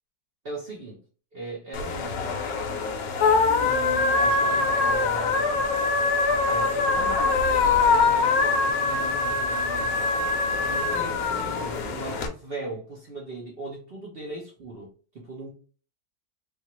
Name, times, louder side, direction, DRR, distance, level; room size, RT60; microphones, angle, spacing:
voice 1, 0.4-1.0 1.3-2.4 3.5-5.8 6.5-10.0 10.6-15.5, right 2 dB, 55° right, 0.6 m, -38 dB
sound 1, 1.7-12.3, left 4 dB, 70° left, 0.9 m, -23 dB
3.4 x 2.4 x 3.0 m
omnidirectional pair, 1.9 m